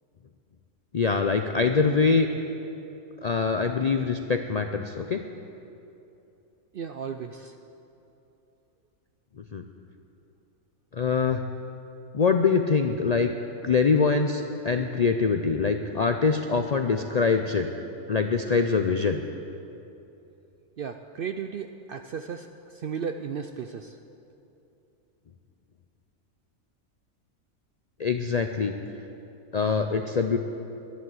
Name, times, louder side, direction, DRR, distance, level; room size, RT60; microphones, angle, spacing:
voice 1, 0.9-2.3 3.2-5.2 9.5-9.6 10.9-11.4 12.1-13.3 13.6-17.7 18.1-19.2 28.0-28.7 29.5-30.4, left 5 dB, 85° left, 5 dB, 0.3 m, -24 dB
voice 2, 6.7-7.6 20.8-24.0, right 6 dB, 70° right, 7 dB, 0.5 m, -35 dB
11.5 x 11.5 x 7.8 m, 2.8 s
omnidirectional pair, 1.5 m